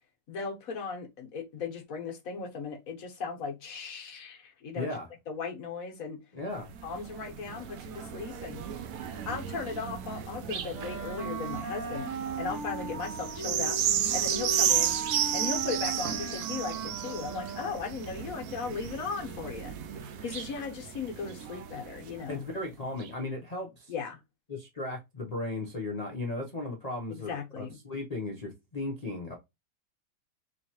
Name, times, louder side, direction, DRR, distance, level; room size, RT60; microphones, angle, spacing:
voice 1, 0.3-5.0 5.3-6.2 6.8-8.6 9.1-12.1 12.4-13.8 14.1-15.0 15.3-19.7 20.1-22.4 23.9-24.2 27.1-27.8, left 5 dB, 55° left, 1.3 m, -37 dB
voice 2, 4.7-5.1 6.3-6.7 22.3-23.9 24.5-29.3, left 2 dB, 85° left, 0.3 m, -36 dB
sound 1, 6.5-22.4 23.0-23.1, right 10 dB, 75° right, 0.8 m, -33 dB
Wind instrument woodwind instrument, 10.7-17.9, right 3 dB, 45° right, 1.6 m, -37 dB
3.8 x 3.1 x 2.9 m
omnidirectional pair, 2.0 m